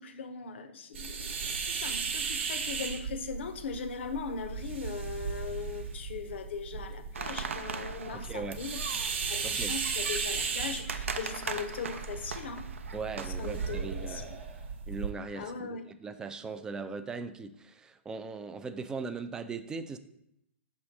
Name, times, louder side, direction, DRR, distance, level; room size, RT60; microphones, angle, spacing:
voice 1, 0.0-8.8 9.3-12.6 13.4-14.3 15.3-15.8, left 5 dB, 60° left, 9 dB, 0.7 m, -39 dB
sound 1, 0.9-15.1, right 5 dB, 60° right, 0.9 m, -36 dB
sound 2, 7.1-14.0, right 5 dB, 75° right, 0.5 m, -40 dB
voice 2, 8.1-8.6 9.4-9.8 12.9-14.3 14.9-20.0, right 4 dB, 10° right, 10 dB, 0.3 m, -39 dB
6.1 x 3.0 x 5.1 m, 0.80 s
hypercardioid pair, 125°, 7 cm